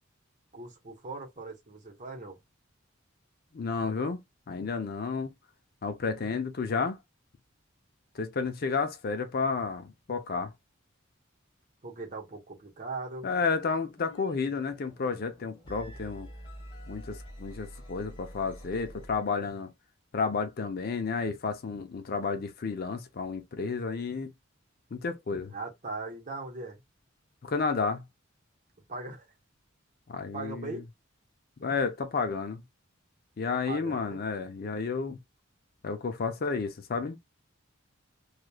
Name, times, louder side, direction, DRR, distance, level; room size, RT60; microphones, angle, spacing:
voice 1, 0.5-2.4 11.8-13.3 25.5-26.8 28.9-29.3 30.3-30.8 33.7-34.2, right 3 dB, 40° right, 1.0 m, -39 dB
voice 2, 3.5-4.2 4.5-5.3 5.8-7.0 8.1-10.5 13.2-16.3 16.9-19.7 20.1-24.3 24.9-25.5 27.4-28.0 30.1-30.8 31.6-32.6 33.4-35.2 35.8-37.2, left 4 dB, 50° left, 0.5 m, -31 dB
sound 1, 14.0-14.3 14.6-19.6, equal, 25° left, 1.2 m, -47 dB
3.0 x 2.4 x 2.2 m
head